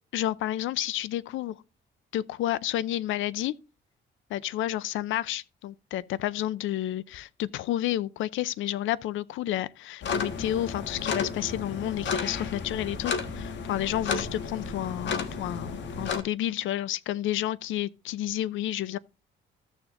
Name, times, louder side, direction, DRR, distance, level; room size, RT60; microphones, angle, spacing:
voice 1, 0.1-1.6 2.1-3.5 4.3-19.0, left 13 dB, 80° left, 0.6 m, -30 dB
sound 1, 10.0-16.2, left 5 dB, 65° left, 1.5 m, -32 dB
14.5 x 7.1 x 2.6 m
cardioid pair, 90°, 20 cm